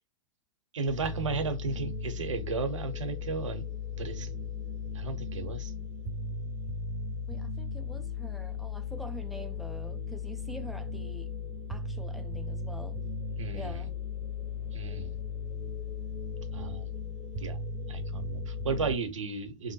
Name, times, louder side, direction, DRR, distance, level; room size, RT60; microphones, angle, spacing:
voice 1, 0.7-3.7 4.0-4.3 4.9-5.7 13.4-13.8 14.7-15.2 16.5-17.0 17.4-17.6 17.9-19.7, right 4 dB, 70° right, 0.7 m, -34 dB
sound 1, 0.9-19.0, left 4 dB, 25° left, 1.2 m, -36 dB
voice 2, 7.3-11.3 11.7-13.0 13.5-14.0, right 1 dB, ahead, 0.3 m, -45 dB
2.5 x 2.1 x 2.8 m
figure-of-eight pair, 100°, 16 cm